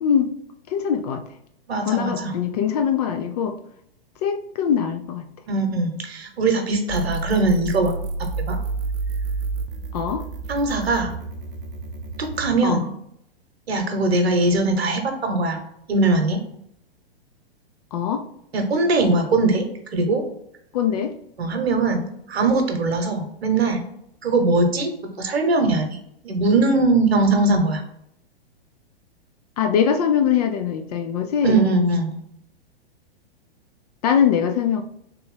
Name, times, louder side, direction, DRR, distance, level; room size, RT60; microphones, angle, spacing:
voice 1, 0.0-0.3 0.7-1.2 1.9-3.5 4.2-5.3 9.9-10.2 12.6-12.8 17.9-18.2 20.7-21.1 29.6-31.6 34.0-34.8, left 8 dB, 40° left, 6 dB, 0.4 m, -22 dB
voice 2, 1.7-2.3 5.5-7.9 8.4-8.6 10.5-11.1 12.2-12.9 13.7-15.6 15.9-16.4 18.5-20.2 21.4-23.8 24.2-24.9 25.2-26.0 26.2-27.8 31.4-32.2, right 2 dB, 80° right, 5 dB, 0.9 m, -21 dB
sound 1, 6.9-12.5, right 3 dB, 60° right, 0.6 m, -29 dB
3.4 x 3.0 x 3.3 m, 0.73 s
hypercardioid pair, 115°, 31 cm